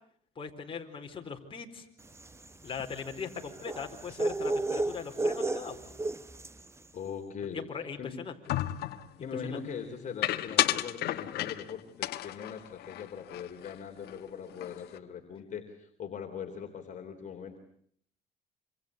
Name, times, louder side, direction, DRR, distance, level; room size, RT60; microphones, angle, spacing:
voice 1, 0.4-1.8 2.6-5.8 7.5-8.3 9.4-9.6, left 6 dB, 30° left, 2 dB, 4.4 m, -40 dB
sound 1, 2.1-6.7, right 2 dB, 15° right, 1.3 m, -33 dB
voice 2, 6.9-7.6 8.0-8.1 9.2-17.6, left 7 dB, 45° left, 3 dB, 3.6 m, -41 dB
sound 2, 8.5-9.1 10.2-11.7 12.0-13.8 14.0-14.2 14.5-15.0, left 14 dB, 70° left, 1.4 m, -32 dB
27.0 x 26.5 x 8.3 m, 0.65 s
cardioid pair, 110°, 17 cm